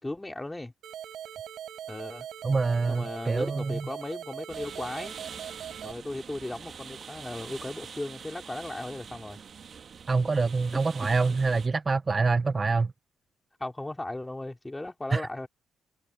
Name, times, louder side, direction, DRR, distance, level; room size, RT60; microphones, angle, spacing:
voice 1, 0.0-0.7 1.9-2.3 2.9-5.2 5.8-9.4 13.6-15.5, left 2 dB, 15° left, 4.1 m, -36 dB
sound 1, 0.8-5.9, right 10 dB, 70° right, 4.3 m, -41 dB
voice 2, 2.4-3.9 10.1-12.9 15.1-15.5, right 4 dB, 30° right, 0.6 m, -26 dB
sound 2, 4.5-11.7, right 6 dB, 50° right, 1.6 m, -44 dB
cardioid pair, 90°, 0 cm